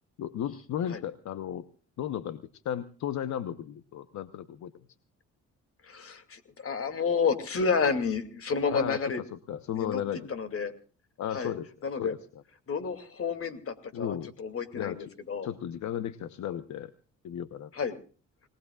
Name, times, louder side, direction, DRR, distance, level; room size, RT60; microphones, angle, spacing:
voice 1, 0.2-1.7 2.0-4.7 8.7-10.3 11.2-11.7 12.0-12.4 13.9-14.3 14.7-15.1 15.4-16.9 17.2-17.7, left 10 dB, 70° left, 11 dB, 1.0 m, -35 dB
voice 2, 5.8-9.2 9.8-10.0 10.3-10.7 11.3-11.6 11.8-12.1 12.7-15.5 17.7-18.0, left 5 dB, 45° left, 10 dB, 2.6 m, -30 dB
28.0 x 19.5 x 2.4 m, 0.39 s
cardioid pair, 90°, 30 cm